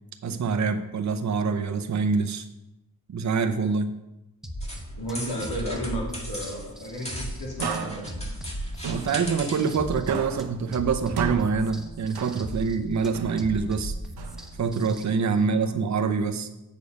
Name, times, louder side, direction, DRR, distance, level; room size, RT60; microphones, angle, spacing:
voice 1, 0.2-2.4 3.1-3.9 8.9-13.9 14.6-16.5, right 5 dB, 50° right, 7 dB, 0.7 m, -25 dB
sound 1, 4.4-15.0, equal, ahead, 0.8 m, -37 dB
sound 2, 4.6-9.8, equal, 15° left, 1.6 m, -39 dB
voice 2, 5.0-8.1 15.4-15.7, equal, 90° left, -3 dB, 3.1 m, -33 dB
sound 3, 7.6-9.8 10.1-12.8 13.1-14.8, right 6 dB, 85° right, 0.8 m, -35 dB
8.3 x 6.8 x 5.3 m, 0.94 s
wide cardioid pair, 150°, 38 cm